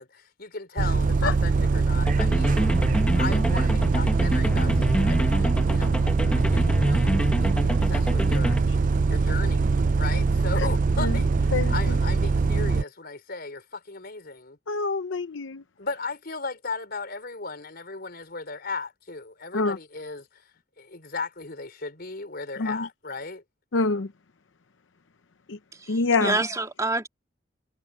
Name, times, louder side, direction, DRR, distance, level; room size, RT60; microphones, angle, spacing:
voice 1, 0.0-2.6 3.2-8.6 9.1-14.6 15.8-20.4 20.8-23.4, left 4 dB, 55° left, 4.3 m, -36 dB
Bus, 0.8-12.8, right 4 dB, 45° right, 0.4 m, -22 dB
sound 1, 2.0-8.6, equal, 5° left, 1.3 m, -28 dB
voice 2, 14.7-15.6 19.5-19.8 22.6-22.8 23.7-24.1 25.5-25.6 25.9-26.3, left 3 dB, 80° left, 0.7 m, -25 dB
voice 3, 25.7-27.1, right 2 dB, 20° right, 2.0 m, -28 dB
head